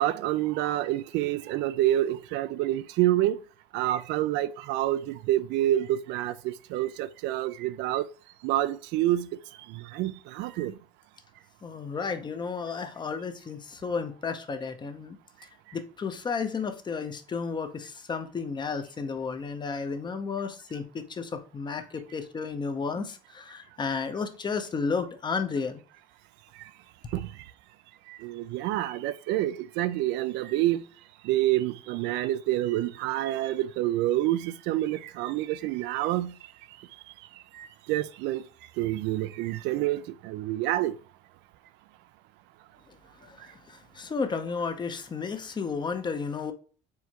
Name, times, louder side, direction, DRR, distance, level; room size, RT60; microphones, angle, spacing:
voice 1, 0.0-3.4 3.7-8.1 8.4-9.3 9.7-10.7 27.1-27.3 28.1-30.8 31.2-36.3 37.5-38.4 38.8-40.9, right 14 dB, 65° right, 0.4 m, -27 dB
voice 2, 11.6-15.2 15.7-25.8 43.2-46.5, left 5 dB, 25° left, 0.6 m, -33 dB
4.6 x 3.4 x 2.9 m
cardioid pair, 115°, 19 cm